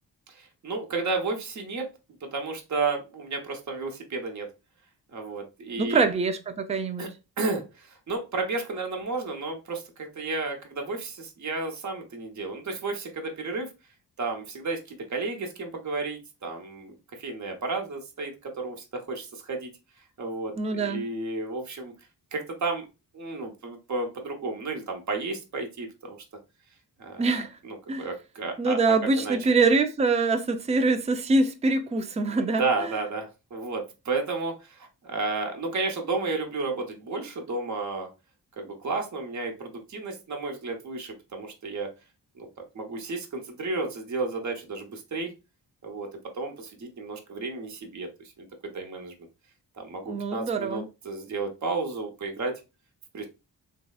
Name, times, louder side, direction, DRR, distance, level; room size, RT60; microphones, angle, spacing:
voice 1, 0.3-1.9 2.2-4.5 5.1-6.0 7.0-7.1 7.4-13.7 14.2-19.7 20.2-21.9 22.3-22.8 23.1-26.2 27.0-27.2 27.6-28.8 29.2-29.4 32.3-38.1 38.6-41.9 42.4-42.5 42.7-45.3 45.8-48.1 48.4-48.5 48.7-49.1 49.8-52.6 53.1-53.3, right 3 dB, 45° right, 0.8 m, -32 dB
voice 2, 5.8-7.1 20.6-21.0 27.2-27.6 27.9-28.1 28.6-32.9 50.1-50.8, right 3 dB, 15° right, 0.4 m, -24 dB
3.1 x 2.7 x 2.3 m
cardioid pair, 70°, 41 cm